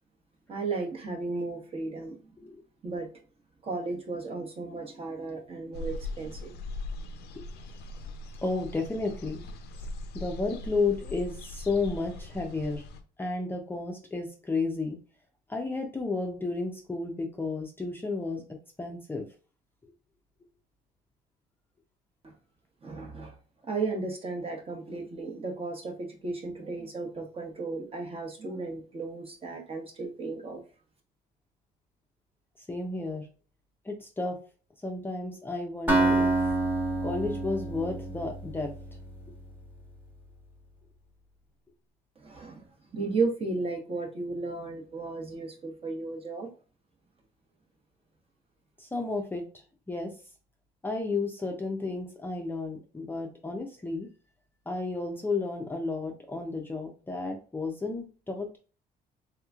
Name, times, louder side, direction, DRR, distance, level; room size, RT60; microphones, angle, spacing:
voice 1, 0.5-2.2 2.8-3.1 3.6-6.5 22.2-22.4 22.8-23.4 23.6-30.6 42.2-46.5, right 3 dB, 35° right, 2 dB, 1.0 m, -34 dB
sound 1, 5.7-13.0, left 2 dB, 75° left, 0.5 m, -40 dB
voice 2, 8.4-9.4 9.8-9.9 10.1-12.8 13.2-15.0 15.5-18.4 18.8-19.3 32.7-33.3 33.8-34.4 34.8-36.3 37.0-38.7 48.8-49.4 49.9-50.1 50.8-54.1 54.7-58.6, left 3 dB, 10° left, 1 dB, 0.5 m, -32 dB
Acoustic guitar, 35.9-39.7, right 2 dB, 10° right, 1.1 m, -28 dB
3.5 x 2.9 x 2.4 m, 0.37 s
cardioid pair, 110°, 17 cm